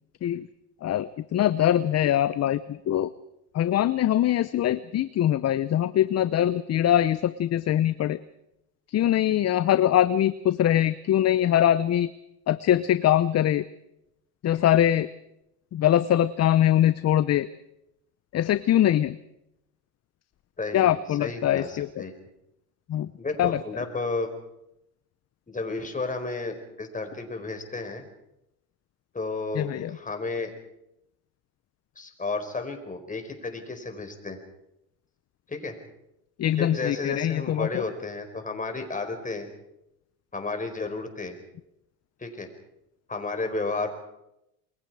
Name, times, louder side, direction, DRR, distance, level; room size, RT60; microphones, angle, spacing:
voice 1, 0.8-3.1 3.5-8.2 8.9-12.1 12.5-13.7 14.4-15.1 15.7-17.5 18.3-19.2 20.7-22.0 22.9-23.1 23.4-23.8 29.5-30.0 36.4-37.8, left 11 dB, 35° left, 15 dB, 0.8 m, -23 dB
voice 2, 20.6-22.1 23.2-24.3 25.5-28.0 29.1-30.5 32.0-34.4 35.5-35.8 36.6-39.5 40.3-41.3 42.2-42.5 43.1-43.9, left 3 dB, 15° left, 6 dB, 4.8 m, -32 dB
28.5 x 22.0 x 4.9 m, 0.86 s
supercardioid pair, 95°, 46 cm